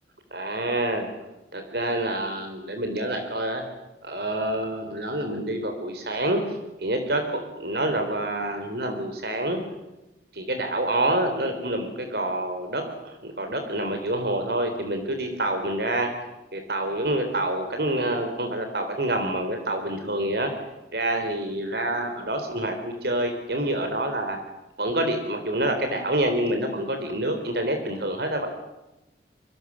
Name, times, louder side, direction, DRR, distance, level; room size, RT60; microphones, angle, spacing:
voice 1, 0.3-1.1 1.5-3.6 4.0-9.6 10.3-16.1 16.5-20.5 20.9-24.4 24.8-28.5, right 1 dB, 60° right, 5 dB, 4.2 m, -27 dB
26.0 x 25.0 x 7.7 m, 0.96 s
head